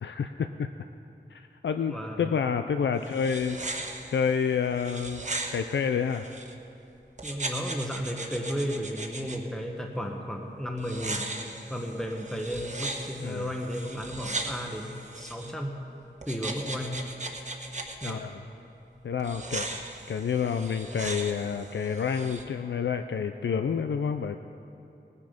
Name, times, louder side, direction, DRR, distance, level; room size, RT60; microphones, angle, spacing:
voice 1, 0.0-0.7 1.3-3.6 4.1-5.2 5.5-6.3 13.2-13.5 18.0-18.4 19.0-19.7 20.1-24.4, left 6 dB, 80° left, 8 dB, 0.5 m, -29 dB
voice 2, 1.9-2.4 7.2-11.2 11.7-15.8 16.3-17.0 18.0-18.3, equal, 5° left, 1 dB, 1.1 m, -34 dB
sound 1, 3.0-6.5 7.2-9.4 10.8-15.5 16.2-18.1 19.2-22.4, right 2 dB, 40° right, 1.3 m, -38 dB
19.0 x 9.5 x 5.1 m, 3.0 s
wide cardioid pair, 95°, 19 cm